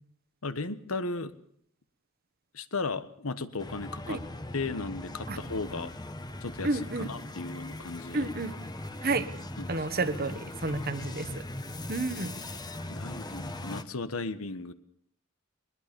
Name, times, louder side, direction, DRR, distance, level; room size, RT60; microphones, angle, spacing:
voice 1, 0.4-1.3 2.5-4.2 4.5-5.9 6.4-8.3 9.6-10.1 10.7-11.4 12.9-14.7, left 3 dB, 90° left, 12 dB, 1.4 m, -36 dB
sound 1, 3.6-13.8, left 1 dB, 20° left, 1.1 m, -40 dB
voice 2, 6.6-7.1 8.1-8.5 9.0-9.3 9.7-11.4 11.9-12.4, right 3 dB, 45° right, 12 dB, 1.3 m, -30 dB
21.0 x 21.0 x 7.0 m, 0.65 s
head